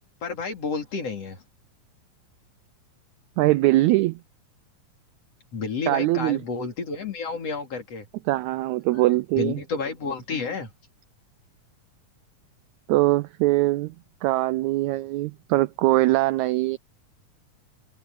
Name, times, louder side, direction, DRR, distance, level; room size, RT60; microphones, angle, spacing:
voice 1, 0.2-1.4 5.5-8.1 8.9-9.0 9.4-10.7, left 4 dB, 50° left, 4.1 m, -30 dB
voice 2, 3.4-4.2 5.9-6.4 8.3-9.6 12.9-13.9 14.2-16.8, right 18 dB, 80° right, 1.7 m, -22 dB
omnidirectional pair, 3.8 m